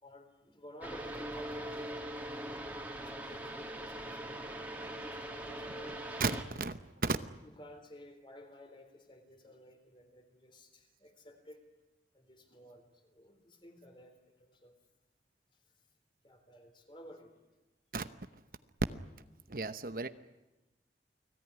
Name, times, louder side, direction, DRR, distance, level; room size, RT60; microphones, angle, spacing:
voice 1, 0.0-2.1 3.1-6.0 7.4-11.6 12.1-14.8 16.2-17.3, equal, 25° left, 6 dB, 3.9 m, -54 dB
sound 1, 0.8-6.4, right 1 dB, 10° right, 2.9 m, -41 dB
voice 2, 6.2-7.2 17.9-18.1 19.5-20.1, right 3 dB, 50° right, 11 dB, 0.9 m, -34 dB
29.5 x 19.0 x 10.0 m, 1.1 s
head